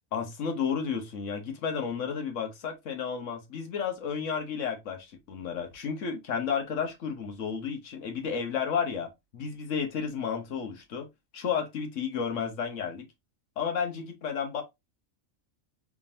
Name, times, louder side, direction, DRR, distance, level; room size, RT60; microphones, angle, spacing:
voice 1, 0.1-11.1 11.3-13.1 13.6-14.6, left 6 dB, 65° left, 1.3 m, -32 dB
3.7 x 3.5 x 2.6 m
omnidirectional pair, 1.4 m